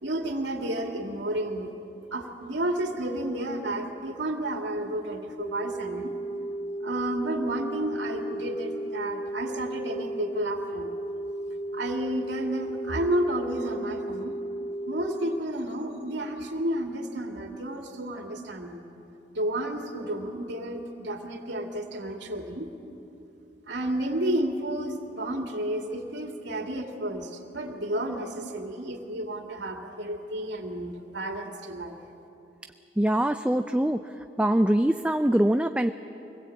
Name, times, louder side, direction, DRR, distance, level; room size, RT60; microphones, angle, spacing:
voice 1, 0.0-1.7 2.1-6.1 6.8-10.9 11.7-14.3 14.9-18.8 19.3-22.7 23.7-32.0, right 1 dB, 80° right, 2 dB, 2.4 m, -31 dB
sound 1, 5.4-15.4, right 1 dB, 35° left, 2.2 m, -34 dB
voice 2, 33.0-34.1 34.4-35.9, right 1 dB, 5° right, 7 dB, 0.4 m, -23 dB
25.0 x 20.5 x 8.5 m, 2.9 s
head